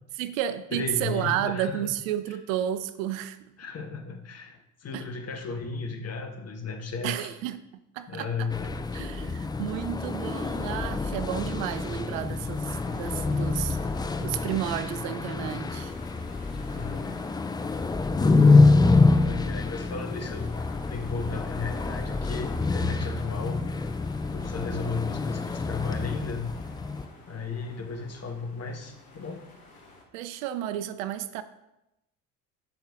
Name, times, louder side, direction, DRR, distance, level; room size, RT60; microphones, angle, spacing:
voice 1, 0.2-3.4 4.9-5.1 7.0-7.6 7.9-8.5 8.9-13.8 14.2-15.9 30.1-31.4, right 11 dB, 65° right, 0.6 m, -32 dB
voice 2, 0.7-1.9 3.6-7.3 8.1-8.8 13.7-13.8 16.7-17.1 19.1-20.5 20.9-23.6 24.3-26.5 27.3-29.5, left 4 dB, 35° left, 1.5 m, -35 dB
sound 1, 8.5-27.1, left 3 dB, 10° left, 0.4 m, -26 dB
sound 2, 11.2-30.0, left 2 dB, 80° left, 1.4 m, -50 dB
13.5 x 5.5 x 3.7 m
figure-of-eight pair, 55°, 44 cm